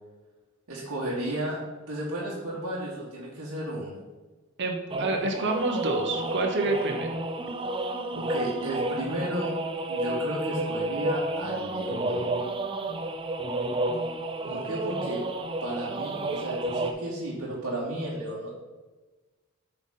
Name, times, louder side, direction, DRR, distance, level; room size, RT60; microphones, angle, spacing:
voice 1, 0.7-1.6 1.9-4.0 8.1-9.5 9.9-12.3 14.5-15.2 15.6-18.5, right 1 dB, 70° right, -6 dB, 1.3 m, -33 dB
voice 2, 4.6-7.2 14.5-14.6, right 2 dB, 50° right, 3 dB, 1.0 m, -28 dB
sound 1, 4.9-16.9, right 1 dB, 25° right, 0.4 m, -31 dB
7.8 x 3.9 x 3.9 m, 1.2 s
head